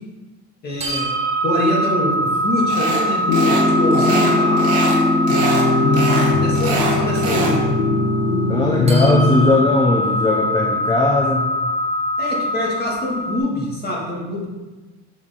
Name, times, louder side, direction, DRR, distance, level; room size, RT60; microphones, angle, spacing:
voice 1, 0.6-1.1 1.4-4.7 5.9-7.8 12.2-14.4, left 1 dB, 30° left, -3 dB, 2.2 m, -25 dB
sound 1, 0.8-13.4, equal, 20° right, 1.5 m, -23 dB
sound 2, 2.7-3.0 3.3-3.7 3.9-5.0 5.3-5.6 5.9-7.6, right 4 dB, 50° right, 2.1 m, -24 dB
sound 3, 3.3-9.5, left 2 dB, 65° left, 1.1 m, -19 dB
voice 2, 8.5-11.5, left 2 dB, 15° left, -1 dB, 0.6 m, -18 dB
7.1 x 6.2 x 3.7 m, 1.2 s
cardioid pair, 150°, 30 cm